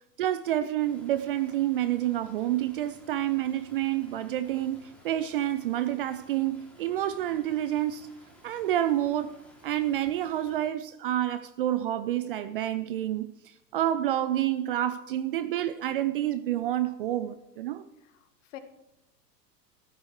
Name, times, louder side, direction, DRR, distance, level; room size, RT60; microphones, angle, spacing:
voice 1, 0.2-8.1 8.4-9.3 9.6-13.3 13.7-17.8, right 12 dB, 35° right, 0.4 m, -28 dB
Stream, 0.8-10.6, equal, 5° left, 2.8 m, -56 dB
voice 2, 18.0-18.6, left 13 dB, 50° left, 1.4 m, -47 dB
15.0 x 12.5 x 3.2 m
figure-of-eight pair, 100°, 49 cm